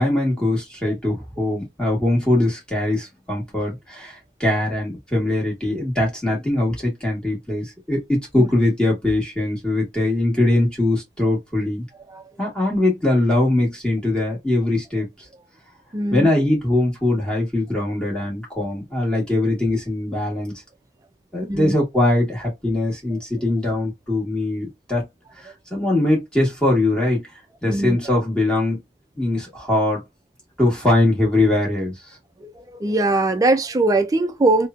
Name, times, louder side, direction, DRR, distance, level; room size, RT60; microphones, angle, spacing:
voice 1, 0.0-11.8 12.4-15.1 16.1-20.5 21.3-25.1 25.4-27.3 27.6-28.8 29.2-30.0 30.6-31.9, left 1 dB, 5° left, 1.2 m, -21 dB
voice 2, 15.9-16.3 21.5-21.7 27.7-28.2 32.4-34.7, right 2 dB, 20° right, 0.3 m, -21 dB
3.0 x 2.0 x 2.4 m
head